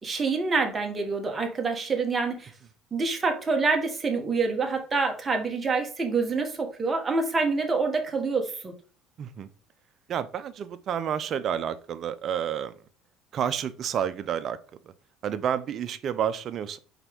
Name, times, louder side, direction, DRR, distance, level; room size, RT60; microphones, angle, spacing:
voice 1, 0.0-2.5 2.9-8.7, right 4 dB, 25° right, 3 dB, 1.5 m, -26 dB
voice 2, 9.2-9.5 10.1-12.7 13.3-14.6 15.2-16.8, right 8 dB, 50° right, 12 dB, 0.7 m, -30 dB
5.8 x 4.6 x 3.6 m, 0.41 s
supercardioid pair, 105°, 0 cm